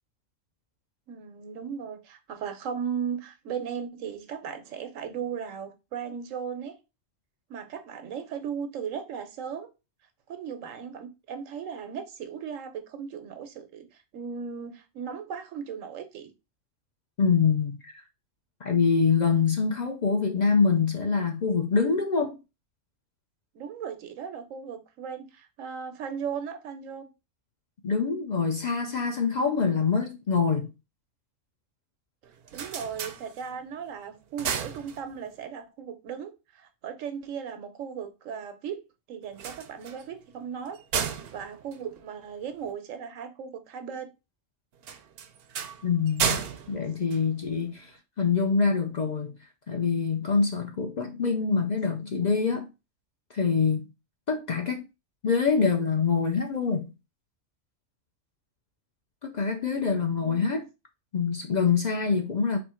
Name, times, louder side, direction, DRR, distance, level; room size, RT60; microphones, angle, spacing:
voice 1, 1.1-6.8 7.5-9.7 10.3-16.3 23.5-27.1 32.5-38.8 39.1-40.8 41.3-44.1 60.2-60.6, right 7 dB, 90° right, 1.2 m, -37 dB
voice 2, 17.2-18.0 18.6-22.4 27.8-30.7 45.8-46.4 46.7-49.4 49.7-52.7 53.3-53.9 54.3-54.8 55.2-56.9 59.2-60.6 61.1-62.6, left 5 dB, 50° left, 0.6 m, -25 dB
sound 1, 32.2-33.8 34.1-35.5 39.2-42.7 44.8-47.9, right 7 dB, 60° right, 0.7 m, -34 dB
4.3 x 2.8 x 4.3 m
omnidirectional pair, 1.3 m